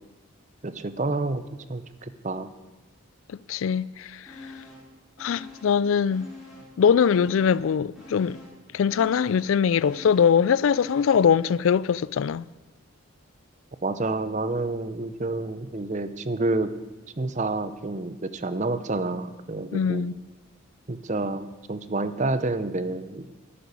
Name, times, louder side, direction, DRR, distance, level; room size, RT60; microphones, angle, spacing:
voice 1, 0.6-2.5 13.8-16.7 17.2-20.1 20.9-23.3, right 2 dB, 35° right, 0.7 m, -29 dB
voice 2, 3.5-4.2 5.2-6.3 6.8-8.4 8.7-12.5 19.7-20.2, left 7 dB, 75° left, 0.3 m, -22 dB
sound 1, 4.3-4.9 5.2-6.7 7.0-11.4 11.7-11.8, left 2 dB, ahead, 4.6 m, -45 dB
12.0 x 9.9 x 8.3 m
head